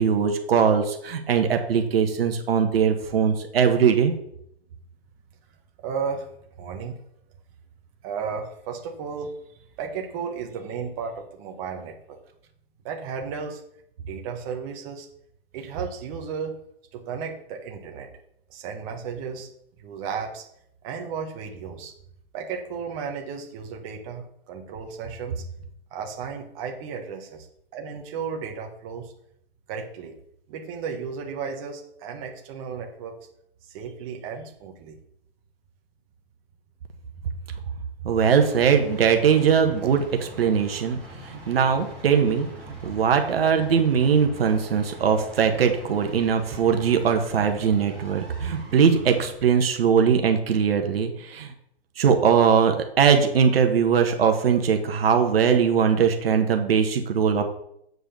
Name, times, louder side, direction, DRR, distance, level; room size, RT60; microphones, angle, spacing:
voice 1, 0.0-4.1 38.0-41.0 41.3-42.5 42.8-51.5 52.0-57.6, right 7 dB, 70° right, 5 dB, 1.4 m, -21 dB
voice 2, 5.8-6.3 6.6-7.0 8.0-9.3 9.8-12.2 12.8-13.6 14.1-15.1 15.5-16.6 16.9-18.1 18.5-19.5 19.8-20.4 20.8-21.9 22.3-25.4 25.9-27.5 27.7-29.1 29.7-30.2 30.5-33.1 33.7-35.0, right 6 dB, 35° right, 2 dB, 1.4 m, -34 dB
sound 1, 38.4-49.3, equal, 5° left, 3.1 m, -43 dB
7.8 x 4.8 x 6.8 m, 0.74 s
hypercardioid pair, 135°, 31 cm